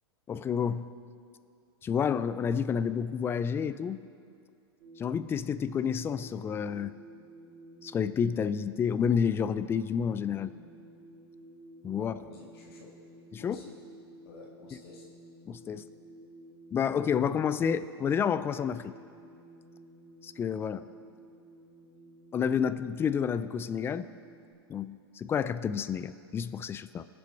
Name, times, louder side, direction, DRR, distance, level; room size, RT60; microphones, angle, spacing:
voice 1, 0.3-0.9 1.8-4.0 5.0-6.9 7.8-10.5 11.8-12.1 13.3-13.6 15.5-15.8 16.7-18.9 20.2-20.8 22.3-24.1 24.7-27.0, left 7 dB, 15° left, 14 dB, 0.4 m, -29 dB
sound 1, 4.8-24.5, right 1 dB, 40° right, 3.8 m, -53 dB
voice 2, 12.0-12.9 13.4-13.8 14.2-15.1, left 4 dB, 65° left, -1 dB, 2.1 m, -50 dB
19.5 x 7.7 x 4.5 m, 2.4 s
hypercardioid pair, 120°, 14 cm